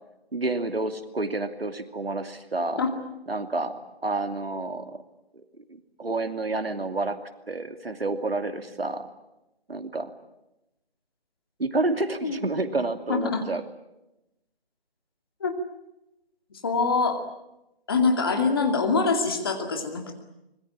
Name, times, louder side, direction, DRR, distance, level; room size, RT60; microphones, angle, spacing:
voice 1, 0.3-2.8 3.3-5.0 6.0-7.2 7.5-9.1 9.7-10.1 11.6-13.6, right 2 dB, 70° right, 7 dB, 2.8 m, -29 dB
voice 2, 13.1-13.4 15.4-15.6 16.6-17.2 17.9-20.2, left 4 dB, 25° left, 4 dB, 2.3 m, -24 dB
25.5 x 22.5 x 8.8 m, 0.91 s
figure-of-eight pair, 165°, 31 cm